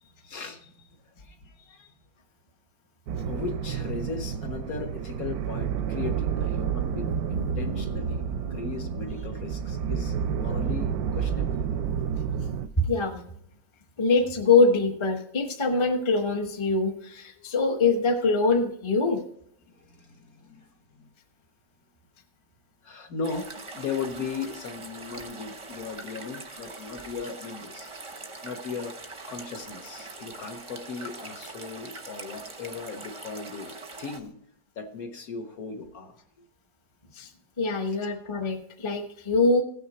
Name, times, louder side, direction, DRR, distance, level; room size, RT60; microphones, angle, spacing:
voice 1, 0.0-0.9 1.2-1.9 3.2-11.6 17.4-17.5 19.7-21.1 22.8-27.9 28.2-28.9 29.3-34.3 34.7-36.4, left 5 dB, 55° left, 5 dB, 1.5 m, -37 dB
sound 1, 3.1-12.7, right 7 dB, 70° right, 0.9 m, -29 dB
voice 2, 12.8-13.2 14.0-19.2 37.1-37.3 37.6-39.6, left 3 dB, 20° left, 4 dB, 0.8 m, -23 dB
sound 2, 23.2-34.2, right 3 dB, 25° right, 0.7 m, -42 dB
16.0 x 6.4 x 4.0 m, 0.70 s
omnidirectional pair, 2.0 m